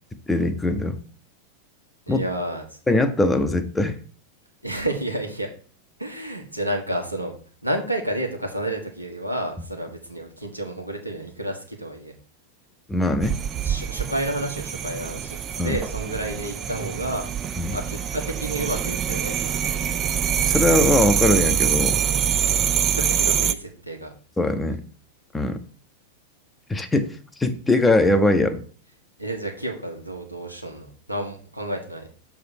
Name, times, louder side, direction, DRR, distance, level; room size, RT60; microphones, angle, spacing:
voice 1, 0.3-1.0 2.1-2.2 2.9-4.0 12.9-13.4 15.6-15.8 17.6-17.8 20.4-22.1 24.4-24.8 25.3-25.6 26.7-28.6, left 2 dB, 10° left, 7 dB, 0.6 m, -21 dB
voice 2, 2.1-2.8 4.6-5.5 6.0-7.3 7.6-12.1 13.6-17.3 17.7-19.8 22.4-22.6 22.9-24.1 29.2-32.1, right 1 dB, 90° right, 2 dB, 1.3 m, -30 dB
sound 1, 13.2-23.5, right 8 dB, 25° right, 0.3 m, -24 dB
6.6 x 3.5 x 6.2 m, 0.41 s
figure-of-eight pair, 90°, 0 cm